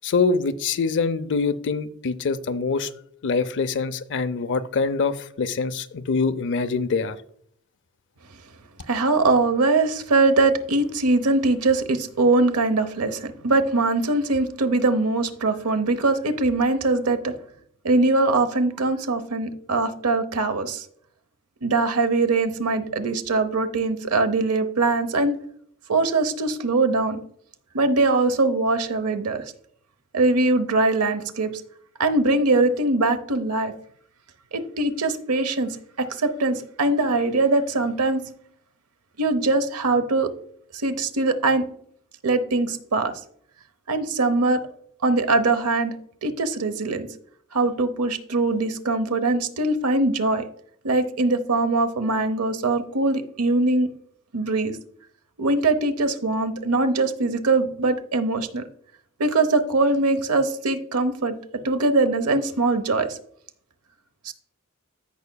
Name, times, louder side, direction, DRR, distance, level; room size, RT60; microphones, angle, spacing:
voice 1, 0.0-2.9 3.2-7.2, left 4 dB, 55° left, 0.5 m, -24 dB
voice 2, 8.9-17.3 17.8-20.8 21.6-25.4 25.9-27.2 27.7-29.5 30.1-31.5 32.0-33.7 34.5-38.2 39.2-40.3 40.8-41.7 42.2-43.1 43.9-44.6 45.0-47.1 47.5-50.4 50.8-53.9 54.3-54.7 55.4-58.6 59.2-61.4 61.6-63.2 64.2-64.3, right 3 dB, 85° right, 0.9 m, -22 dB
15.0 x 5.7 x 2.3 m
head